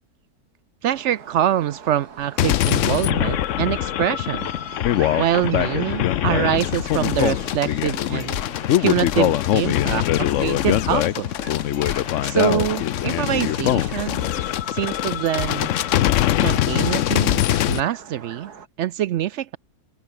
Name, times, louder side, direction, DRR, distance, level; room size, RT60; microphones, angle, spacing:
voice 1, 0.8-4.5 5.1-8.4 8.8-11.3 12.2-14.3 14.7-15.7 16.4-18.5 18.8-19.6, right 11 dB, 70° right, 0.7 m, -24 dB
sound 1, 0.9-18.7, right 6 dB, 85° right, 2.4 m, -42 dB
sound 2, 2.4-17.8, left 12 dB, 65° left, 0.9 m, -22 dB
open air
omnidirectional pair, 1.6 m